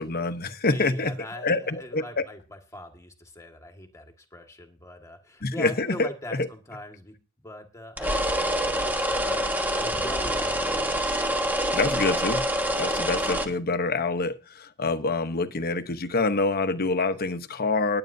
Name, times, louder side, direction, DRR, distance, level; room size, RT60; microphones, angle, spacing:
voice 1, 0.0-2.2 5.4-6.1 11.7-12.4 12.8-18.0, left 3 dB, 45° left, 10 dB, 1.0 m, -26 dB
voice 2, 0.6-7.1 7.4-10.8, left 1 dB, 15° left, 4 dB, 1.8 m, -41 dB
sound 1, 8.0-13.5, equal, 10° right, 1.2 m, -26 dB
20.0 x 8.9 x 2.7 m, 0.34 s
head